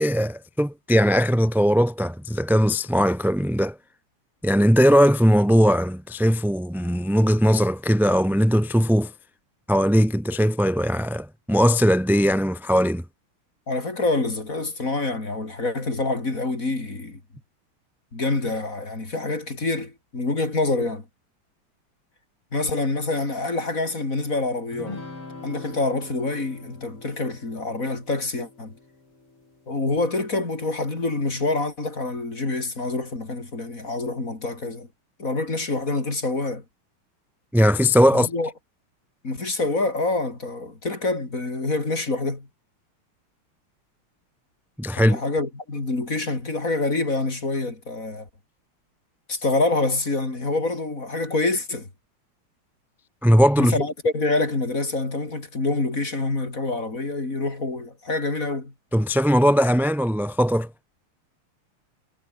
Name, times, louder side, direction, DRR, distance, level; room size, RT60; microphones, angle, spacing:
voice 1, 0.0-3.8 4.4-9.1 9.7-13.0 37.5-38.3 44.8-45.2 53.2-53.7 58.9-60.7, equal, ahead, 1.8 m, -19 dB
voice 2, 13.7-17.2 18.1-21.0 22.5-25.0 25.4-28.7 29.7-34.9 35.2-36.6 38.1-38.5 39.2-42.5 45.0-48.3 49.3-51.9 53.6-58.7, left 2 dB, 35° left, 4.5 m, -26 dB
sound 1, 24.7-30.4, left 3 dB, 85° left, 7.6 m, -43 dB
omnidirectional pair, 2.4 m